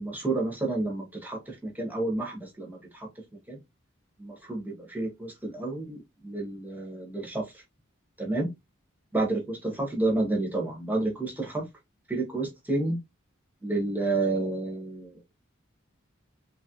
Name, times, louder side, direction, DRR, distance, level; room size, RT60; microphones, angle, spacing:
voice 1, 0.0-3.1 3.5-3.6 4.2-7.6 8.2-8.5 9.1-11.6 12.1-13.0 13.6-15.3, right 2 dB, 10° right, 0.7 m, -30 dB
3.0 x 2.4 x 2.8 m
head